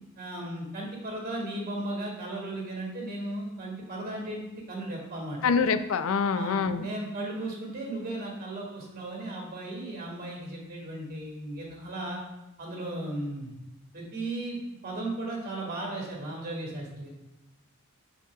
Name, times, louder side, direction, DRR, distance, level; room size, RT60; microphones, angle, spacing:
voice 1, 0.2-5.4 6.3-12.2 12.6-13.5 13.9-14.6 14.8-17.1, right 1 dB, 45° right, -1 dB, 2.0 m, -36 dB
voice 2, 5.4-6.8, left 5 dB, 65° left, 10 dB, 0.4 m, -25 dB
7.1 x 7.1 x 2.4 m, 0.98 s
head